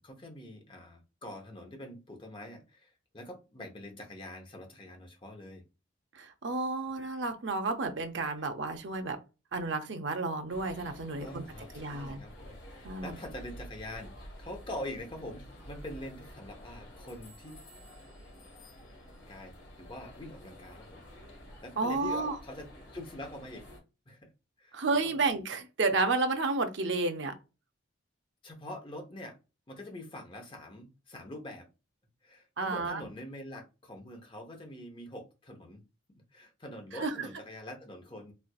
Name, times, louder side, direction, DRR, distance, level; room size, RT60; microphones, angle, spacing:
voice 1, 0.0-5.6 11.2-17.6 19.3-21.0 21.6-23.7 24.1-24.3 24.6-24.8 25.0-25.1 28.4-29.4 29.7-31.7 32.2-38.3, left 1 dB, 25° left, 0.7 m, -44 dB
voice 2, 6.1-9.2 9.5-11.4 11.7-12.2 12.8-13.2 21.8-22.4 24.7-27.3 32.6-33.0 36.9-37.3, right 3 dB, 65° right, 0.6 m, -31 dB
sound 1, 10.5-23.8, equal, 70° left, 2.0 m, -50 dB
4.4 x 2.5 x 2.3 m
head